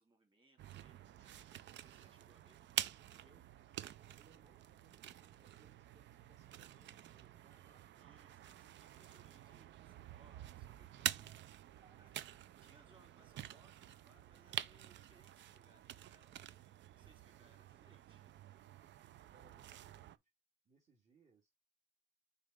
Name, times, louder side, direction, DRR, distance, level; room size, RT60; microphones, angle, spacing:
voice 1, 0.0-3.3 7.9-11.7 12.0-16.6 16.8-18.3, right 2 dB, 25° right, 3.2 m, -70 dB
sound 1, 0.6-20.2, right 12 dB, 65° right, 0.5 m, -48 dB
voice 2, 4.2-7.9 11.8-12.7 19.2-20.3 20.7-21.5, right 4 dB, 40° right, 1.9 m, -71 dB
6.5 x 4.1 x 3.7 m
cardioid pair, 90°, 20 cm